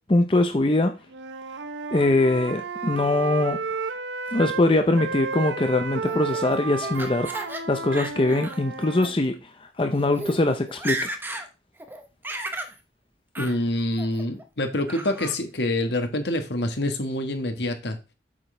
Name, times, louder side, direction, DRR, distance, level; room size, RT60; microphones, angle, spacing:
voice 1, 0.1-0.9 1.9-3.7 4.3-7.3 7.7-11.1, left 2 dB, 30° left, 0.6 m, -22 dB
Wind instrument woodwind instrument, 1.1-4.7 5.0-9.2, right 4 dB, 80° right, 0.7 m, -32 dB
Laughter, 6.1-7.6 7.9-8.6 9.0-9.1 9.8-9.9 10.1-10.4 10.7-11.5 11.8-12.7 13.3-13.6 14.0-14.4 14.9-15.4, right 1 dB, 10° right, 0.9 m, -34 dB
voice 2, 13.4-18.0, left 1 dB, 70° left, 1.5 m, -26 dB
8.7 x 6.2 x 3.3 m
head